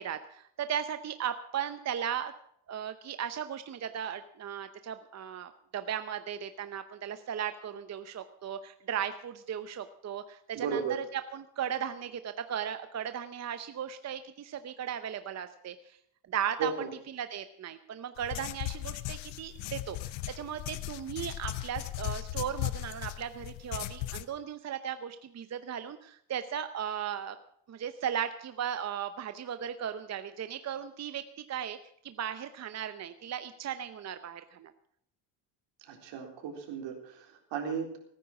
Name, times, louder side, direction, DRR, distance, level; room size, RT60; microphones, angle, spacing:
voice 1, 0.0-2.3 2.7-16.0 16.3-16.9 17.1-27.4 27.7-31.2 31.5-31.8 32.0-34.7, right 9 dB, 35° right, 10 dB, 0.8 m, -36 dB
voice 2, 10.5-10.9 16.6-16.9 35.9-38.0, right 6 dB, 70° right, 2 dB, 4.0 m, -35 dB
sound 1, 18.2-24.2, left 16 dB, 85° left, 0.9 m, -37 dB
18.0 x 10.0 x 6.0 m, 0.69 s
cardioid pair, 120°, 46 cm